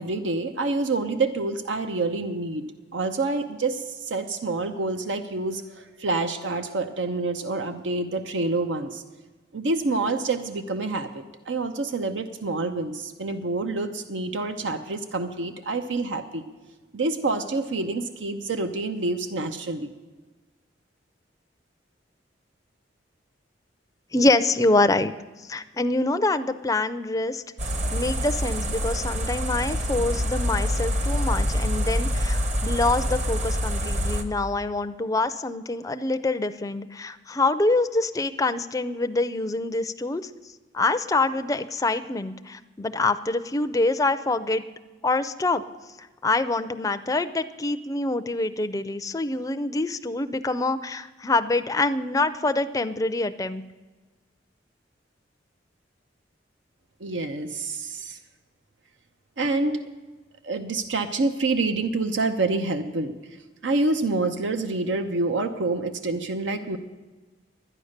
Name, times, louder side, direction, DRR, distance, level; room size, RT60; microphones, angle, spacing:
voice 1, 0.0-9.0 9.5-16.4 16.9-19.9 57.0-58.2 59.4-59.8 60.4-63.1 63.6-66.8, right 3 dB, 90° right, 8 dB, 0.7 m, -27 dB
voice 2, 24.1-25.1 25.4-27.4 27.9-40.2 40.7-44.6 45.0-45.6 46.0-53.6, left 2 dB, 20° left, 10 dB, 0.4 m, -25 dB
sound 1, 27.6-34.2, equal, 40° right, 0.9 m, -26 dB
12.0 x 9.7 x 6.5 m, 1.2 s
head